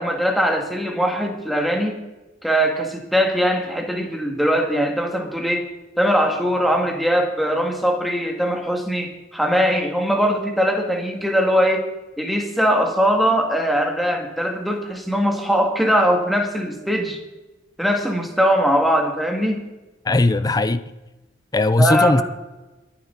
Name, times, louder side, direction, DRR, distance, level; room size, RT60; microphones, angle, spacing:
voice 1, 0.0-2.0 2.4-5.7 6.0-11.8 12.2-17.2 17.8-19.6 21.8-22.2, equal, ahead, 2 dB, 2.0 m, -21 dB
voice 2, 20.1-20.8 21.5-22.2, left 2 dB, 20° left, 14 dB, 0.5 m, -18 dB
22.5 x 10.0 x 4.0 m, 1.1 s
head